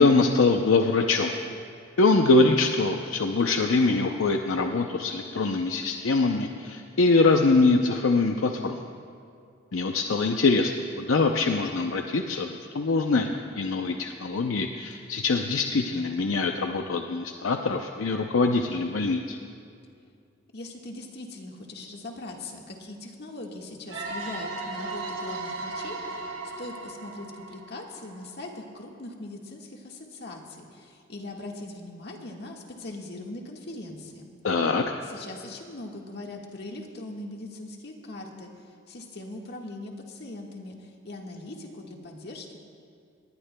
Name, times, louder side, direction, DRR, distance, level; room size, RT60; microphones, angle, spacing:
voice 1, 0.0-1.3 2.0-8.8 9.7-10.7 11.0-13.3 13.6-19.4 34.4-34.8, left 3 dB, 80° left, 4 dB, 0.6 m, -23 dB
voice 2, 20.5-26.3 26.6-34.3 35.0-38.5 38.9-42.6, left 2 dB, 55° left, 0 dB, 1.6 m, -40 dB
sound 1, 23.9-28.5, right 3 dB, 70° right, 2.3 m, -36 dB
20.0 x 19.5 x 2.2 m, 2.4 s
head